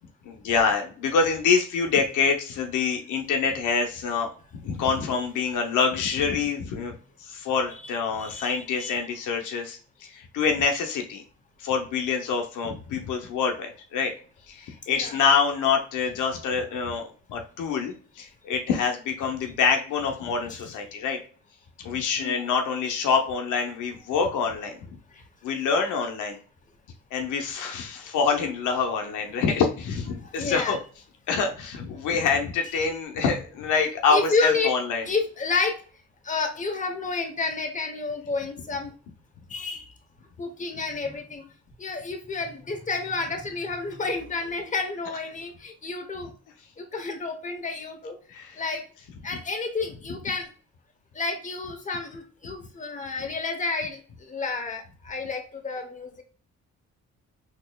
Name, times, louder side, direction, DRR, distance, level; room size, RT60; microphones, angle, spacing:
voice 1, 0.2-4.3 4.6-6.9 7.2-11.2 11.6-14.1 14.5-21.2 21.8-25.0 25.4-26.4 27.1-30.8 31.3-35.1 48.3-48.6 52.4-52.5, left 5 dB, 85° left, 3 dB, 0.8 m, -26 dB
voice 2, 8.1-8.9 14.9-15.1 22.2-22.5 25.1-25.2 30.2-30.7 34.1-34.7 35.1-35.8 36.2-38.9 39.5-39.9 40.4-41.4 41.8-46.3 46.8-48.2 48.6-48.8 49.2-50.5 51.1-56.2, left 4 dB, 25° left, 4 dB, 0.9 m, -30 dB
4.0 x 2.9 x 2.2 m, 0.40 s
cardioid pair, 85°, 30 cm